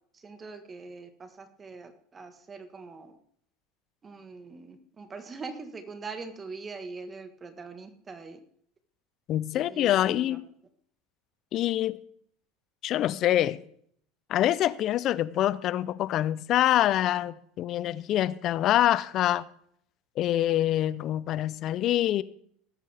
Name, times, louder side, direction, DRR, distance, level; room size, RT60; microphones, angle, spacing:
voice 1, 0.1-3.2 4.0-8.4 9.5-10.4, right 4 dB, 25° right, 1.5 m, -42 dB
voice 2, 9.3-10.4 11.5-12.0 12.8-13.6 14.3-19.4 20.2-22.2, left 13 dB, 50° left, 0.6 m, -25 dB
18.0 x 8.4 x 3.5 m
supercardioid pair, 100°, 0 cm